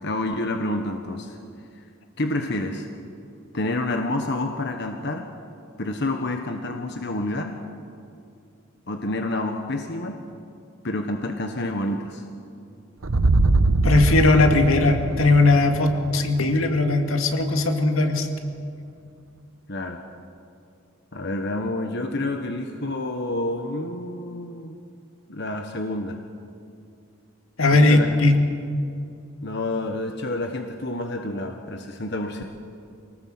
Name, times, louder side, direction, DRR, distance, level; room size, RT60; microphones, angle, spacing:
voice 1, 0.0-1.4 2.2-2.9 3.5-5.3 5.8-7.6 8.9-10.2 10.8-12.2 19.7-20.0 21.1-24.8 25.3-26.2 27.7-28.1 29.4-32.5, left 1 dB, 55° left, 4 dB, 1.4 m, -28 dB
sound 1, 13.0-17.1, right 2 dB, 85° right, 1.0 m, -23 dB
voice 2, 13.8-18.3 27.6-28.4, left 2 dB, 85° left, 5 dB, 2.1 m, -18 dB
24.0 x 19.0 x 7.9 m, 2.4 s
head